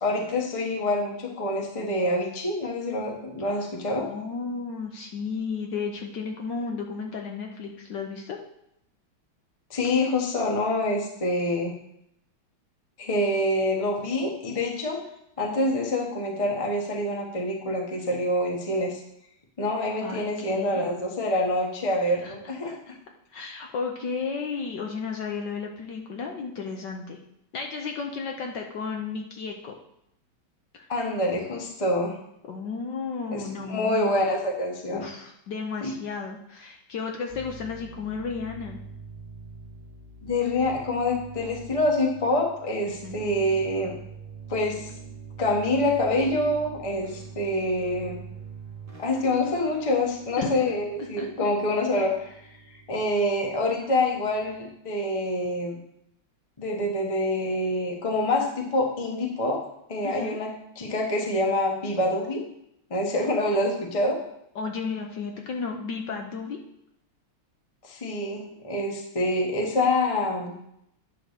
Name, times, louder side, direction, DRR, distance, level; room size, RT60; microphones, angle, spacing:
voice 1, 0.0-4.1 9.7-11.7 13.0-15.0 15.4-19.0 19.6-22.7 30.9-32.2 33.3-35.0 35.8-35.9 40.2-43.9 44.5-44.9 45.4-48.2 49.0-52.3 52.9-55.8 56.6-59.6 59.9-62.4 62.9-64.2 67.8-70.5, left 1 dB, 20° left, 1 dB, 1.0 m, -26 dB
voice 2, 4.0-8.4 20.0-20.8 22.2-22.3 22.6-23.0 23.3-27.2 27.5-29.8 30.7-30.8 32.5-34.2 34.9-38.8 42.9-43.2 50.4-50.5 51.2-51.3 60.0-60.4 64.5-66.6, left 5 dB, 65° left, 2 dB, 1.4 m, -33 dB
sound 1, 37.3-54.7, right 5 dB, 30° right, 1.2 m, -45 dB
10.0 x 3.8 x 6.6 m, 0.77 s
omnidirectional pair, 2.3 m